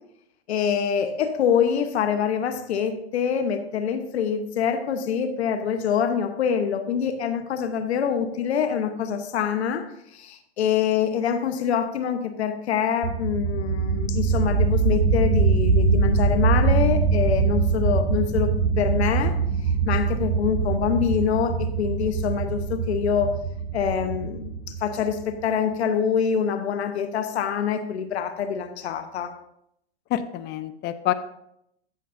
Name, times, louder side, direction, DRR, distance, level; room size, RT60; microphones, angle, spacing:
voice 1, 0.5-18.5 18.8-19.4 19.8-23.4 23.7-29.3, left 7 dB, 90° left, 9 dB, 1.0 m, -25 dB
sound 1, 13.0-25.4, right 4 dB, 65° right, 2.3 m, -23 dB
voice 2, 30.1-31.1, left 13 dB, 35° left, 12 dB, 0.5 m, -27 dB
14.0 x 6.7 x 2.6 m, 0.76 s
hypercardioid pair, 125°, 32 cm